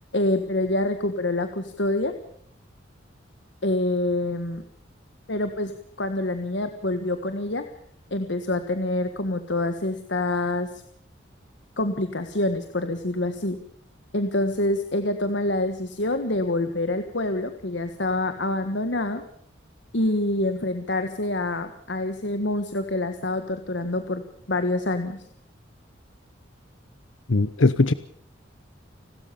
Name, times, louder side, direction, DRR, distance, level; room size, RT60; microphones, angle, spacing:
voice 1, 0.1-2.1 3.6-4.6 5.3-7.6 8.1-10.7 11.8-13.6 14.1-19.2 19.9-25.2, left 2 dB, 65° left, 8 dB, 1.5 m, -26 dB
voice 2, 27.3-27.9, left 3 dB, 80° left, 14 dB, 0.8 m, -19 dB
30.0 x 13.0 x 7.0 m, 0.64 s
head